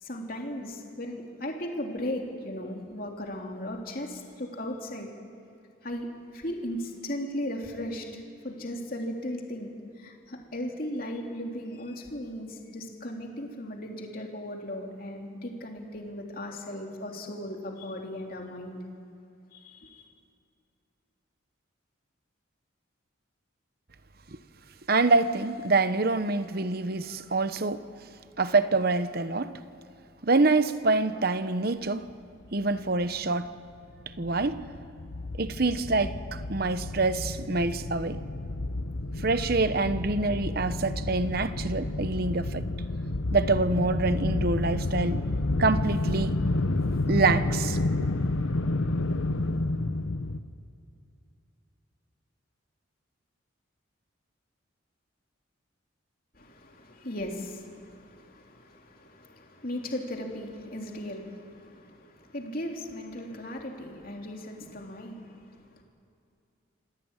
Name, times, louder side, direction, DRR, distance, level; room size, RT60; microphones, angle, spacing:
voice 1, 0.0-5.1 5.8-18.8 19.5-20.1 56.3-65.8, left 1 dB, 45° left, 3.1 m, -37 dB
voice 2, 24.9-27.8 28.4-29.5 30.2-32.1 32.5-33.5 34.2-34.6 35.4-38.2 39.2-42.7 43.3-45.2 45.6-46.4 47.1-48.1, right 3 dB, 50° right, 0.9 m, -26 dB
sound 1, 33.0-33.1 33.4-33.5 33.8-50.4, left 2 dB, 80° left, 1.0 m, -30 dB
27.0 x 17.0 x 9.0 m
head